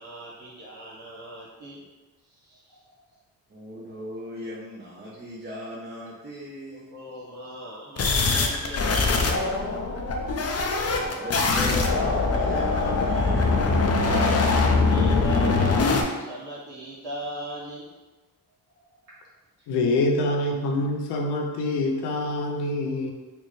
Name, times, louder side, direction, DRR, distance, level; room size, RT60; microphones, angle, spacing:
voice 1, 0.0-1.9 2.3-2.9 6.7-9.0 14.8-17.9 19.6-19.7, right 1 dB, 75° right, -7 dB, 1.4 m, -38 dB
voice 2, 3.5-6.9 10.8-14.1, equal, 30° right, -6 dB, 0.8 m, -38 dB
sound 1, 8.0-16.0, left 3 dB, 40° left, 0.6 m, -22 dB
voice 3, 19.7-23.1, left 2 dB, 85° left, 2 dB, 0.6 m, -25 dB
4.4 x 2.1 x 3.1 m, 1.2 s
supercardioid pair, 60°, 39 cm